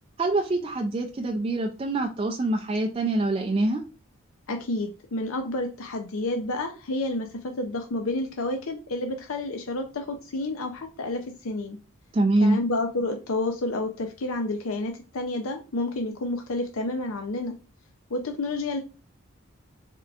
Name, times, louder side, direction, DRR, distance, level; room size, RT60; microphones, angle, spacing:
voice 1, 0.2-3.8 12.1-12.6, right 2 dB, 25° right, 3 dB, 0.3 m, -25 dB
voice 2, 4.5-11.8 12.4-17.6 18.1-18.8, left 2 dB, 85° left, 4 dB, 0.5 m, -30 dB
4.3 x 3.7 x 2.4 m, 0.34 s
head